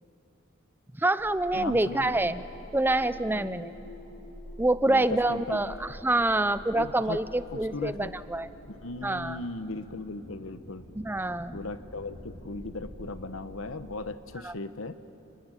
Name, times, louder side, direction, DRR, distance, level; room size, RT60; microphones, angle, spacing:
voice 1, 1.0-2.4 2.7-3.7 4.6-8.5 9.0-9.4 11.0-11.6 14.4-14.5, right 2 dB, 10° right, 14 dB, 0.6 m, -26 dB
sound 1, 1.2-14.0, equal, 50° left, 3.5 m, -47 dB
voice 2, 1.5-2.4 3.3-3.7 4.9-5.7 6.7-7.2 7.5-8.1 8.8-10.8 11.5-14.9, left 2 dB, 75° left, 11 dB, 1.1 m, -37 dB
30.0 x 20.5 x 9.1 m, 2.7 s
head